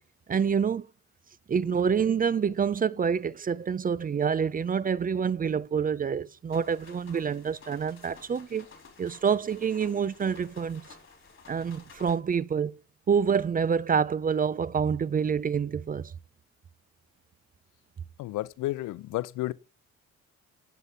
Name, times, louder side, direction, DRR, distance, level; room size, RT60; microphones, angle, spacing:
voice 1, 0.3-0.9 1.5-8.7 9.0-10.8 11.5-12.7 13.1-16.1, right 6 dB, 30° right, 0.5 m, -27 dB
sound 1, 6.5-12.2, left 4 dB, 40° left, 3.8 m, -52 dB
voice 2, 18.2-19.5, left 17 dB, 85° left, 0.6 m, -31 dB
9.8 x 7.9 x 5.4 m
cardioid pair, 90°, 30 cm